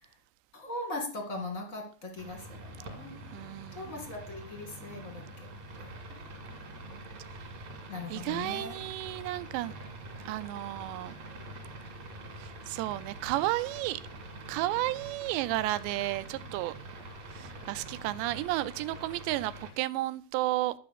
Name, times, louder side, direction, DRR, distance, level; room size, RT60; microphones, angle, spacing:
voice 1, 0.5-3.2 3.7-5.5 7.9-8.7, left 2 dB, 40° left, 2 dB, 1.1 m, -39 dB
sound 1, 2.2-19.7, right 1 dB, 45° right, 3.3 m, -46 dB
Purr, 2.3-18.5, right 3 dB, 65° right, 1.6 m, -51 dB
voice 2, 3.3-4.0 8.1-9.7 10.3-11.2 12.4-14.0 14.5-16.7 17.3-20.7, right 17 dB, 85° right, 15 dB, 2.9 m, -32 dB
12.5 x 5.7 x 8.0 m, 0.43 s
omnidirectional pair, 5.0 m